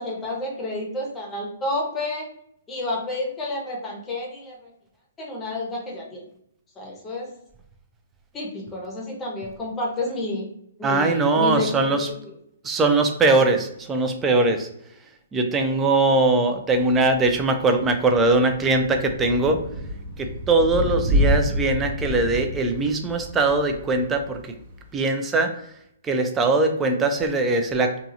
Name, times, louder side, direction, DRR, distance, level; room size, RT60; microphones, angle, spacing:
voice 1, 0.0-2.3 2.7-4.7 5.2-6.3 6.8-7.3 8.3-10.5 10.8-12.1, left 2 dB, 15° left, -2 dB, 0.8 m, -30 dB
voice 2, 10.8-12.1 12.6-14.7 15.3-19.6 20.2-24.4 24.9-25.5 26.0-28.0, right 3 dB, 15° right, 5 dB, 0.4 m, -21 dB
Thunder / Rain, 16.8-25.0, equal, 35° right, 0.8 m, -29 dB
2.7 x 2.4 x 2.6 m, 0.74 s
hypercardioid pair, 145°, 0 cm